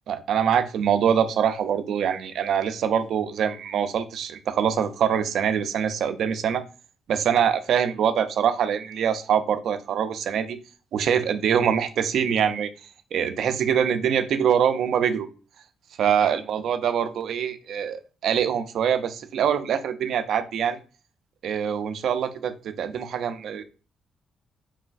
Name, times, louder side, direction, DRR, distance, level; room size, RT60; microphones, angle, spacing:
voice 1, 0.1-6.6 7.1-10.6 10.9-12.7 13.1-15.3 16.0-20.8 21.4-23.6, right 8 dB, 70° right, 10 dB, 0.3 m, -24 dB
3.2 x 2.3 x 2.3 m, 0.35 s
cardioid pair, 90°, 0 cm